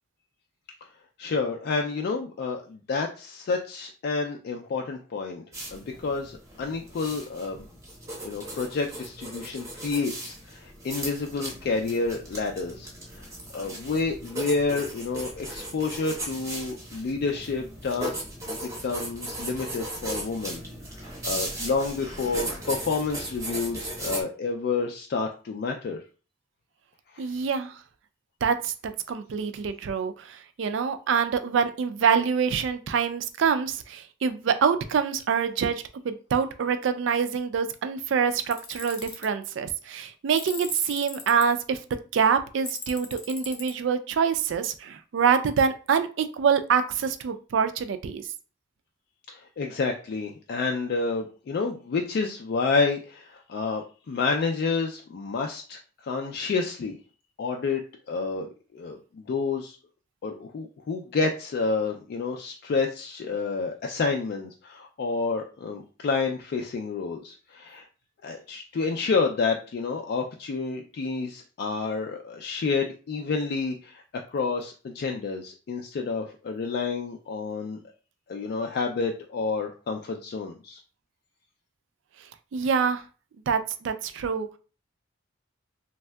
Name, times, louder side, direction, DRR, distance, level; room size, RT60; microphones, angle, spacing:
voice 1, 1.2-5.4 5.7-7.6 8.2-12.9 13.2-13.3 13.5-20.6 21.2-26.0 27.1-27.3 49.3-56.9 57.4-57.8 58.1-59.8 60.2-67.8 68.2-74.0 74.3-77.8 78.3-80.8, left 4 dB, 55° left, 2 dB, 0.3 m, -29 dB
sound 1, 5.5-24.2, right 1 dB, 15° right, 0.7 m, -37 dB
voice 2, 27.2-27.8 28.4-41.8 42.1-48.3 82.5-83.0 83.5-84.6, right 6 dB, 70° right, 9 dB, 0.3 m, -25 dB
Tools, 38.5-39.3 40.3-41.4 42.7-43.7, left 5 dB, 90° left, 0.7 m, -38 dB
3.2 x 2.7 x 2.2 m, 0.36 s
head